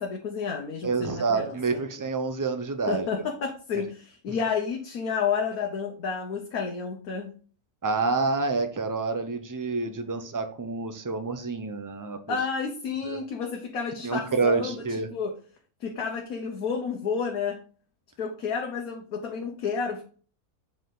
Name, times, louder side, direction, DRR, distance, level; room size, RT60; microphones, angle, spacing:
voice 1, 0.0-1.8 2.9-7.3 12.3-15.3 15.8-17.6 18.2-20.0, left 6 dB, 75° left, 1 dB, 1.5 m, -31 dB
voice 2, 0.8-3.1 4.3-4.4 7.8-12.4 13.1-13.2 14.0-15.1, right 4 dB, 20° right, 8 dB, 0.6 m, -28 dB
7.7 x 4.9 x 3.9 m, 0.41 s
omnidirectional pair, 1.6 m